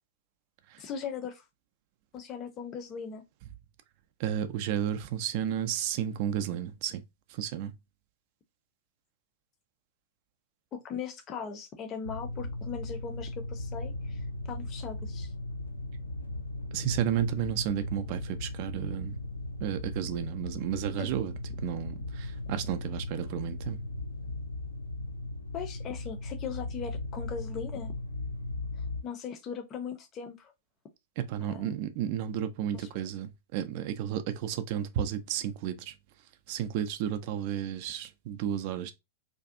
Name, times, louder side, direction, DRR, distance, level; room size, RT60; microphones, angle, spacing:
voice 1, 0.8-1.4 2.1-3.2 10.7-14.2 14.5-15.3 21.0-21.1 25.5-27.9 29.0-30.5 31.4-31.7 32.7-32.9, left 7 dB, 30° left, 0.5 m, -39 dB
voice 2, 4.2-7.0 7.4-7.7 16.7-19.2 19.6-21.3 21.6-23.8 31.2-35.9 36.5-38.9, right 10 dB, 45° right, 0.4 m, -32 dB
sound 1, 12.0-29.0, left 2 dB, 75° left, 0.3 m, -37 dB
2.5 x 2.3 x 2.5 m
figure-of-eight pair, 100°, 0 cm